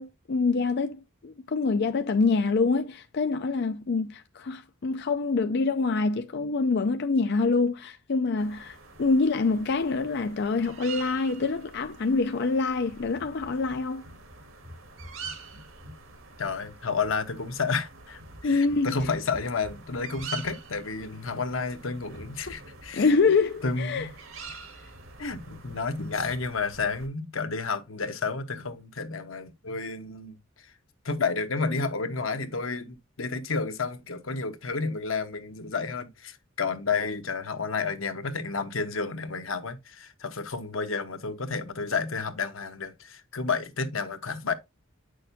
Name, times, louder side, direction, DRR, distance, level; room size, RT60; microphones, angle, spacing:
voice 1, 0.0-14.0 18.4-18.9 23.0-24.1, left 4 dB, 55° left, 0.5 m, -26 dB
sound 1, 8.4-27.1, right 4 dB, 85° right, 2.1 m, -45 dB
voice 2, 16.4-23.1 23.6-24.1 25.2-30.7 31.0-44.5, left 4 dB, 85° left, 1.2 m, -31 dB
9.1 x 6.4 x 2.7 m
head